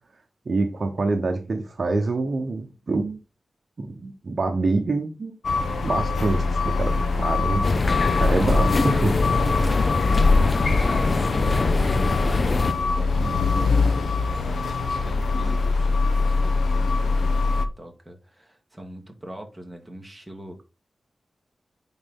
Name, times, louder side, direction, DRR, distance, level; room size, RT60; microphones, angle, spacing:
voice 1, 0.5-3.2 3.8-5.3 5.8-9.2, right 3 dB, 45° right, 1.0 m, -26 dB
sound 1, 5.4-17.7, left 4 dB, 80° left, 0.8 m, -23 dB
sound 2, 7.6-12.7, left 3 dB, 35° left, 0.4 m, -23 dB
voice 2, 10.8-11.7 12.2-20.6, right 1 dB, 5° right, 1.7 m, -41 dB
9.6 x 4.0 x 3.8 m
wide cardioid pair, 160°, 0 cm